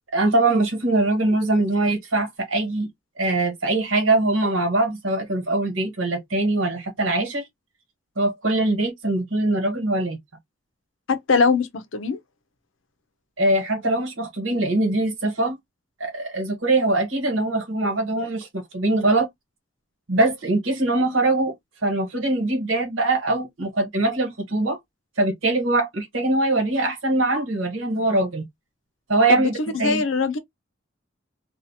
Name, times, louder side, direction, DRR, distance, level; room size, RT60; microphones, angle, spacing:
voice 1, 0.1-2.9 3.2-7.5 8.2-10.2 13.4-15.6 16.0-19.3 20.1-21.5 21.8-24.8 25.2-28.4 29.1-30.0, right 2 dB, 80° right, 1.3 m, -22 dB
voice 2, 11.1-12.2 29.3-30.4, left 4 dB, 75° left, 0.6 m, -22 dB
2.8 x 2.4 x 2.7 m
head